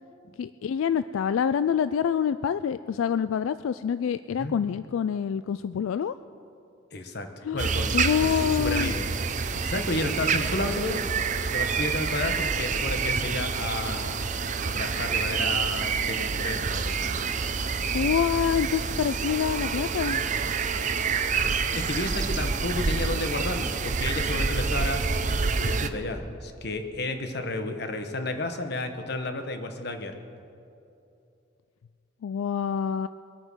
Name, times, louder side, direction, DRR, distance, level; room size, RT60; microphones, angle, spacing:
voice 1, 0.4-6.1 7.4-7.7 7.9-8.9 17.9-20.2 32.2-33.1, left 7 dB, 85° left, 13 dB, 0.3 m, -26 dB
voice 2, 6.9-7.3 7.5-8.0 8.2-9.0 9.5-11.0 11.5-14.1 14.6-17.2 21.7-25.1 25.6-30.2, left 2 dB, 55° left, 6 dB, 1.2 m, -32 dB
sound 1, 7.6-25.9, right 5 dB, 40° right, 0.6 m, -27 dB
22.5 x 8.8 x 6.3 m, 2.7 s
head